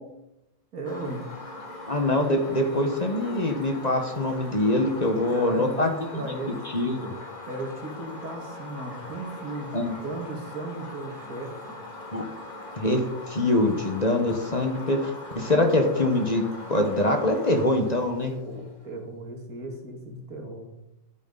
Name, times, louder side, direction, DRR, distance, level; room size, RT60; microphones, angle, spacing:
voice 1, 0.7-1.2 5.0-6.6 7.5-9.8 10.0-11.6 18.2-20.7, right 2 dB, 85° right, 2 dB, 2.4 m, -36 dB
sound 1, 0.8-18.8, left 2 dB, 70° left, 4.5 m, -41 dB
voice 2, 1.9-6.2 6.7-7.1 9.7-9.9 12.1-12.2 12.8-13.0 13.3-18.3, left 1 dB, 30° left, 4 dB, 1.2 m, -24 dB
12.5 x 8.2 x 4.0 m, 0.86 s
omnidirectional pair, 1.5 m